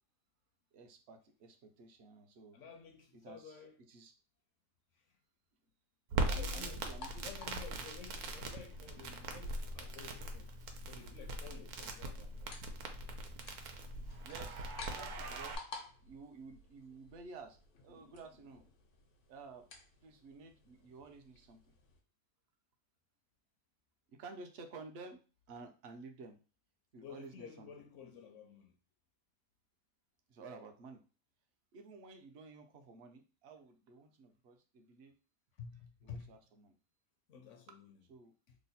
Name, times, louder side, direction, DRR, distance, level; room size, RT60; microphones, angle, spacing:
voice 1, 0.7-2.6 3.1-3.6 3.9-4.1 6.3-7.3 14.2-15.6 16.0-17.6 17.8-18.6 19.3-19.7 20.0-21.7 24.1-25.2 25.5-26.4 26.9-27.7 30.3-31.0 31.7-35.2 36.0-36.8 38.1-38.3, right 4 dB, 60° right, 0.7 m, -52 dB
voice 2, 2.5-3.8 6.2-6.8 7.2-10.5 10.9-12.6 27.0-28.7 35.6-36.4 37.3-38.0 38.5-38.6, left 6 dB, 65° left, 0.8 m, -52 dB
Crackle, 6.1-15.6, right 2 dB, 80° right, 1.1 m, -41 dB
sound 1, 6.8-22.0, left 3 dB, 85° left, 1.2 m, -55 dB
3.1 x 2.1 x 4.0 m
omnidirectional pair, 1.6 m